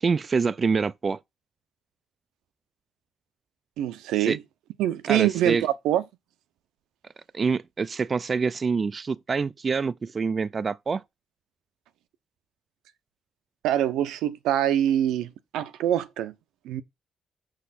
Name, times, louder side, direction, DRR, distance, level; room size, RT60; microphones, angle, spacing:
voice 1, 0.0-1.2 4.2-4.4 5.1-5.7 7.3-11.0, right 5 dB, 35° right, 0.4 m, -26 dB
voice 2, 3.8-4.4 4.8-6.0 13.6-16.3 16.6-16.8, right 11 dB, 90° right, 0.7 m, -24 dB
6.7 x 6.5 x 4.2 m
cardioid pair, 90°, 0 cm